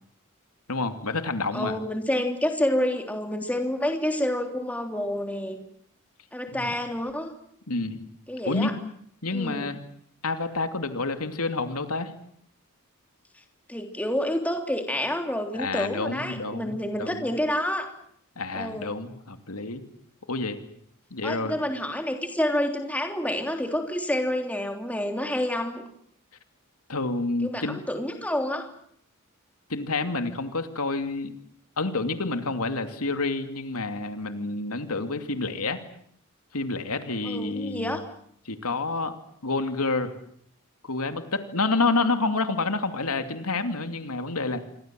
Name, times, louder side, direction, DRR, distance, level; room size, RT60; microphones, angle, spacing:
voice 1, 0.7-1.8 6.5-6.7 7.7-8.0 8.5-8.7 9.2-9.8 10.2-12.1 15.6-17.2 18.4-19.8 20.3-20.6 21.1-21.6 26.9-27.8 29.7-31.3 31.8-35.8 36.5-38.0 38.5-39.1 39.4-40.1 40.8-44.6, left 3 dB, 85° left, 8 dB, 2.6 m, -28 dB
voice 2, 1.5-5.6 6.3-7.3 8.3-8.7 9.3-9.7 13.7-17.9 18.5-18.9 21.2-25.8 27.4-28.7 37.2-38.0, left 1 dB, 5° left, 4 dB, 3.3 m, -28 dB
27.5 x 23.5 x 7.7 m, 0.66 s
head